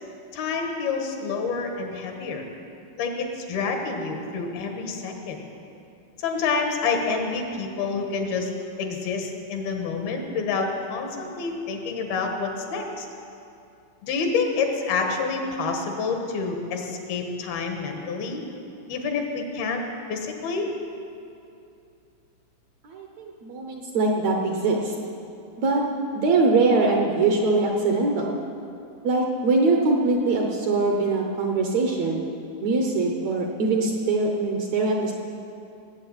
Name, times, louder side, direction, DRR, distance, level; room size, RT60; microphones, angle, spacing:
voice 1, 0.3-2.4 3.0-5.4 6.2-8.5 8.8-13.1 14.0-18.4 18.9-19.8 20.1-20.7, left 4 dB, 80° left, 3 dB, 3.3 m, -28 dB
voice 2, 22.8-25.0 25.6-25.8 26.1-28.4 29.0-32.3 32.6-35.1, right 3 dB, 65° right, 1 dB, 1.8 m, -22 dB
18.5 x 7.9 x 8.8 m, 2.6 s
omnidirectional pair, 4.3 m